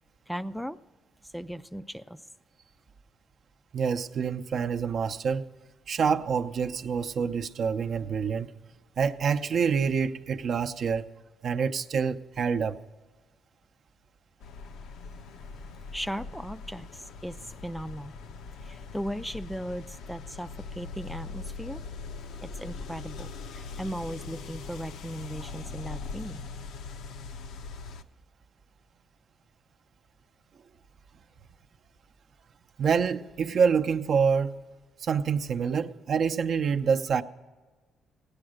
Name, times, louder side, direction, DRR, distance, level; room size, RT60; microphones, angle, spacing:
voice 1, 0.3-0.8 1.2-2.3 15.9-18.1 18.6-21.8 22.4-26.4, equal, ahead, 0.3 m, -37 dB
voice 2, 3.7-5.5 5.9-8.5 9.0-11.1 11.4-12.8 32.8-34.6 35.0-37.2, right 6 dB, 60° right, 0.6 m, -26 dB
sound 1, 14.4-28.0, left 4 dB, 85° left, 0.6 m, -41 dB
15.5 x 9.7 x 6.4 m
cardioid pair, 90°, 0 cm